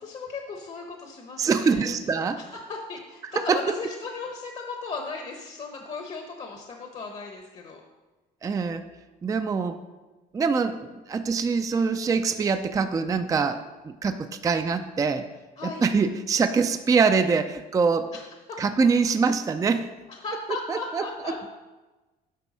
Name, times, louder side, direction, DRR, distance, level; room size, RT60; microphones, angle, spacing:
voice 1, 0.0-1.8 2.4-7.8 15.6-15.9 18.1-18.6 20.1-21.4, left 4 dB, 40° left, 3 dB, 0.9 m, -36 dB
voice 2, 1.4-2.4 3.5-3.6 8.4-8.9 9.2-9.8 10.3-15.3 15.6-18.1 18.6-19.9 20.7-21.3, right 5 dB, 20° right, 8 dB, 0.4 m, -24 dB
9.1 x 3.4 x 6.2 m, 1.2 s
cardioid pair, 110°, 17 cm